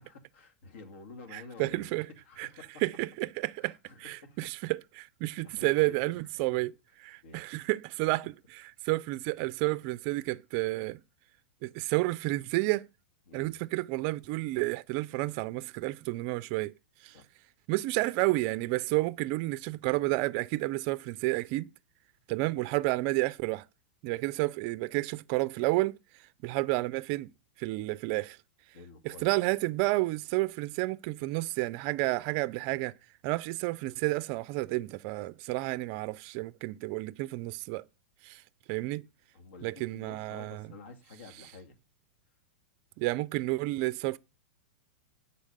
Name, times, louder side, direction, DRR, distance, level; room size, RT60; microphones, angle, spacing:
voice 1, 0.0-2.7 3.6-4.4 5.4-6.1 7.2-7.6 13.3-13.5 17.1-17.2 28.7-29.3 39.3-41.8, left 3 dB, 75° left, 2.0 m, -50 dB
voice 2, 1.3-2.1 2.4-2.5 2.8-3.7 4.0-6.7 7.0-11.0 11.6-12.9 13.3-16.7 17.0-17.1 17.7-21.7 22.3-23.7 24.0-25.9 26.4-27.3 27.6-28.4 29.0-32.9 33.2-37.8 38.2-38.4 38.7-39.0 39.6-40.6 43.0-44.2, right 20 dB, 45° right, 0.3 m, -31 dB
8.3 x 4.1 x 6.6 m
hypercardioid pair, 140°, 6 cm